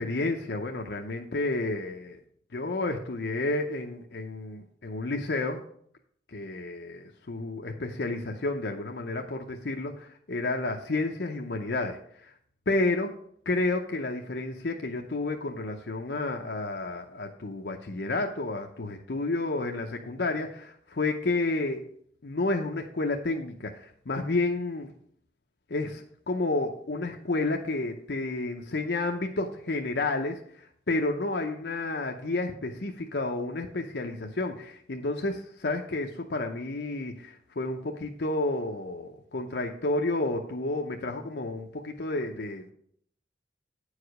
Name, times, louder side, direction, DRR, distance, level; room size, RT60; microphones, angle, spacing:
voice 1, 0.0-2.2 2.5-5.6 6.3-12.3 12.7-13.1 13.5-21.9 22.2-24.9 25.7-42.7, left 2 dB, 65° left, 2 dB, 0.7 m, -31 dB
8.9 x 4.9 x 6.4 m, 0.64 s
head